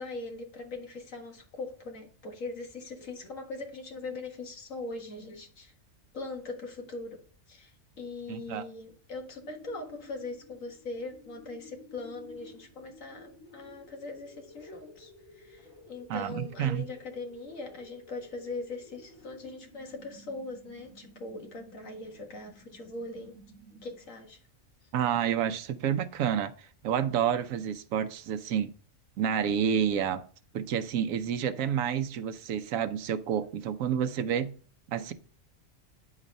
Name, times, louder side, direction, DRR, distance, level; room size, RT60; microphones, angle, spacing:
voice 1, 0.0-5.7 6.1-7.2 7.5-23.3 23.8-24.4, left 3 dB, 75° left, 2.0 m, -41 dB
voice 2, 8.3-8.6 16.1-16.8 24.9-28.7 29.2-30.2 30.5-34.5 34.9-35.1, right 8 dB, 80° right, 1.1 m, -29 dB
sound 1, 9.3-24.2, left 1 dB, 90° left, 3.2 m, -54 dB
10.0 x 4.1 x 5.3 m
omnidirectional pair, 1.4 m